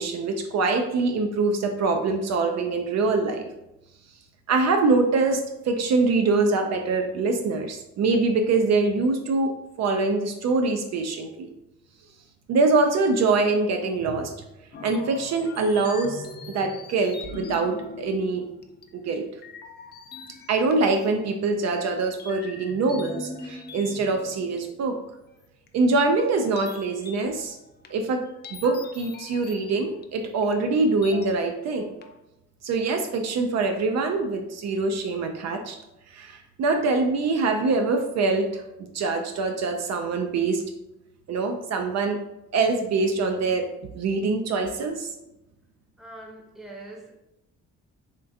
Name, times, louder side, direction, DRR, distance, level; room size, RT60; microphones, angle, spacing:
voice 1, 0.0-3.5 4.5-11.5 12.5-14.4 14.8-18.4 18.9-19.2 20.5-25.0 25.7-27.6 27.9-28.2 28.5-31.9 32.6-35.7 36.1-38.6 38.9-40.6 41.3-42.2 42.5-43.7 43.9-45.1, right 3 dB, 60° right, 5 dB, 0.4 m, -24 dB
sound 1, 14.7-19.1 19.4-21.6 22.2-25.2 25.7-25.8 26.6-30.0 30.4-30.5 31.0-31.7 32.0-32.1, left 3 dB, 35° left, 0.4 m, -42 dB
voice 2, 46.0-47.1, right 2 dB, ahead, -1 dB, 0.7 m, -42 dB
3.5 x 2.3 x 2.7 m, 0.89 s
cardioid pair, 90°, 30 cm